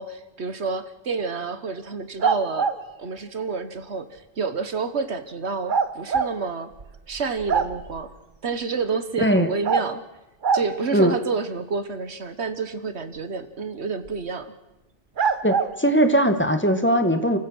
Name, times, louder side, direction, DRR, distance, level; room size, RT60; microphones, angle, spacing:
voice 1, 0.0-2.7 3.0-6.7 7.1-8.1 8.4-10.0 10.5-14.5, right 4 dB, 85° right, 11 dB, 1.6 m, -29 dB
sound 1, 2.2-2.8 5.7-6.3 6.8-6.9 7.2-8.0 9.6-9.9 10.4-10.7 14.1-14.2 15.2-15.7, right 5 dB, 50° right, 1.1 m, -23 dB
voice 2, 9.2-9.5 10.9-11.2 15.4-17.4, right 1 dB, 10° left, 7 dB, 1.4 m, -20 dB
29.0 x 15.0 x 6.3 m, 0.99 s
omnidirectional pair, 1.1 m